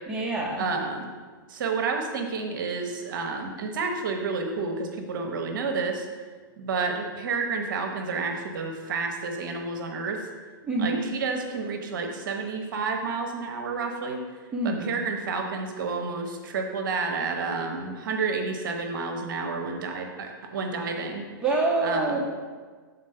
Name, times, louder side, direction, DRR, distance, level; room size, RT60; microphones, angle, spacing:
voice 1, 0.1-0.7 10.6-11.0 14.5-14.9 21.4-22.2, right 2 dB, 5° right, -3 dB, 1.2 m, -26 dB
voice 2, 0.6-1.1 1.5-6.1 6.6-10.2 10.8-14.2 14.6-21.2 21.8-22.2, right 4 dB, 65° right, 4 dB, 0.9 m, -30 dB
7.1 x 4.1 x 5.4 m, 1.5 s
hypercardioid pair, 130°, 12 cm